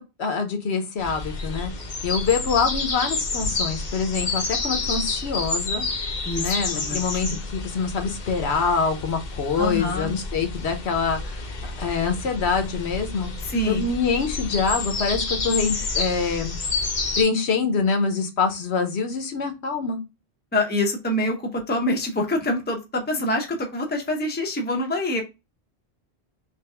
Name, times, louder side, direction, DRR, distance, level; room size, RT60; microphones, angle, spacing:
voice 1, 0.0-1.7 2.0-5.9 6.4-11.5 11.8-13.3 13.7-16.5 17.2-20.0, left 5 dB, 70° left, 6 dB, 1.0 m, -25 dB
sound 1, 1.0-17.2, left 3 dB, 50° left, 0.8 m, -29 dB
voice 2, 6.3-7.0 7.3-7.4 9.6-10.1 13.4-13.9 20.5-25.2, left 1 dB, 10° left, 2 dB, 0.6 m, -25 dB
3.5 x 3.0 x 3.2 m, 0.25 s
omnidirectional pair, 1.1 m